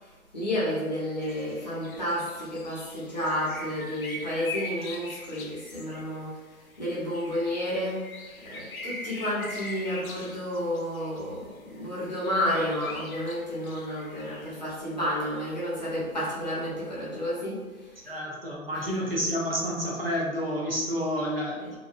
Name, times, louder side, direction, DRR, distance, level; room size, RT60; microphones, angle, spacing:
voice 1, 0.0-6.4 6.8-18.1 18.7-19.1 21.6-21.7, equal, 30° left, -8 dB, 0.6 m, -31 dB
sound 1, 1.2-14.5, left 2 dB, 70° left, 0.6 m, -42 dB
voice 2, 18.1-21.7, equal, 45° right, -4 dB, 0.4 m, -29 dB
2.6 x 2.1 x 2.4 m, 1.3 s
figure-of-eight pair, 150°, 43 cm